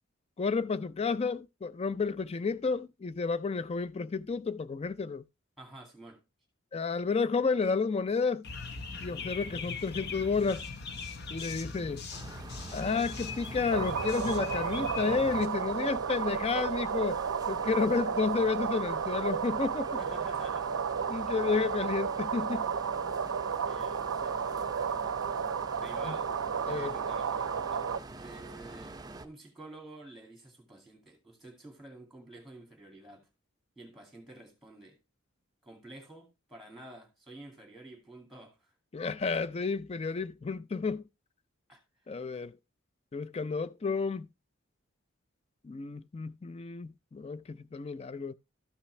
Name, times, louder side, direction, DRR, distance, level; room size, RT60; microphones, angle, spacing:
voice 1, 0.4-5.2 6.7-8.5 9.0-10.6 11.3-12.0 12.7-17.2 17.5-19.9 21.1-22.7 26.0-26.1 26.7-27.0 38.9-41.0 42.1-42.5 43.1-44.3 45.6-48.3, left 4 dB, 30° left, 0.4 m, -31 dB
voice 2, 5.6-6.2 20.0-20.7 23.2-24.5 25.8-26.3 26.7-27.8 28.2-33.3 33.8-35.0 35.6-38.7 41.7-41.8, right 1 dB, ahead, 2.2 m, -50 dB
sound 1, 8.4-15.5, left 4 dB, 55° left, 0.9 m, -40 dB
sound 2, 12.1-29.3, right 3 dB, 20° right, 0.5 m, -46 dB
sound 3, 13.7-28.0, right 6 dB, 80° right, 0.5 m, -33 dB
13.0 x 5.7 x 3.2 m
head